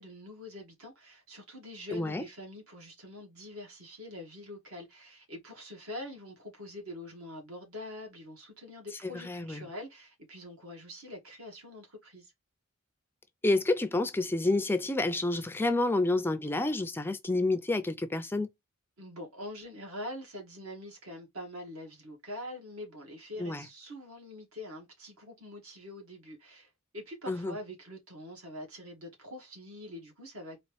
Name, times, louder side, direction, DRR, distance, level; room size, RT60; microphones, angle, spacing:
voice 1, 0.0-12.3 19.0-30.6, left 1 dB, 70° right, 1.8 m, -44 dB
voice 2, 1.9-2.2 9.1-9.7 13.4-18.5 23.4-23.7 27.3-27.5, left 2 dB, 10° left, 0.3 m, -29 dB
4.1 x 2.9 x 3.1 m
head